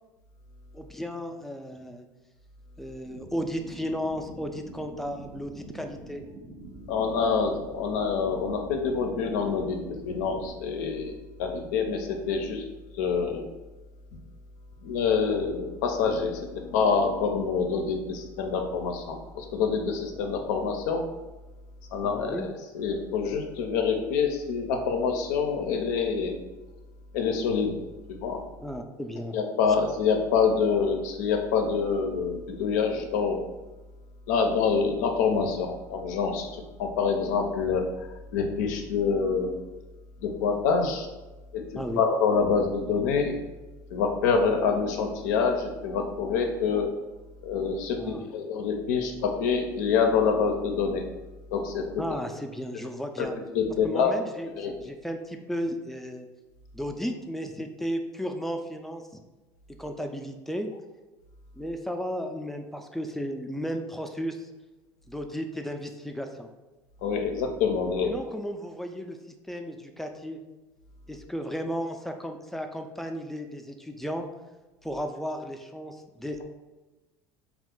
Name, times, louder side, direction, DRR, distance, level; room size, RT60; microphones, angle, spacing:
voice 1, 0.7-2.1 2.8-6.2 22.0-22.5 28.6-29.4 41.8-42.0 48.0-48.3 52.0-53.3 53.8-56.3 56.7-59.2 59.8-60.7 61.6-64.5 65.1-66.5 68.0-69.2 69.5-70.4 71.1-74.3 74.8-76.4, equal, 5° left, 5 dB, 0.3 m, -34 dB
sound 1, 3.1-10.5, right 2 dB, 45° right, 0.6 m, -45 dB
voice 2, 6.9-9.8 10.0-11.1 11.4-12.6 13.0-13.4 14.8-21.0 21.9-22.5 22.7-26.4 27.1-27.7 28.2-28.4 29.3-33.4 34.3-37.8 38.3-39.5 40.2-41.1 41.5-41.6 42.0-43.4 43.9-46.9 47.4-51.0 51.5-51.9 53.2-53.3 53.5-54.1 54.6-54.9 67.0-68.1, left 5 dB, 85° left, 4 dB, 0.4 m, -26 dB
2.4 x 2.3 x 3.6 m, 1.1 s
supercardioid pair, 95°, 9 cm